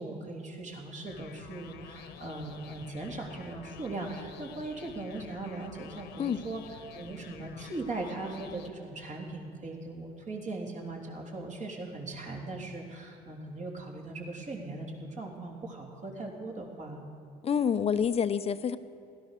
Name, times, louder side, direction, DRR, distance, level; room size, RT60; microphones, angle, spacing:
voice 1, 0.0-6.6 6.9-17.0, right 2 dB, 45° right, 0 dB, 3.4 m, -39 dB
sound 1, 1.1-8.7, left 7 dB, 80° left, 1.3 m, -49 dB
voice 2, 17.4-18.8, left 7 dB, 35° left, 12 dB, 0.7 m, -27 dB
16.5 x 13.0 x 6.7 m, 2.6 s
cardioid pair, 110°, 17 cm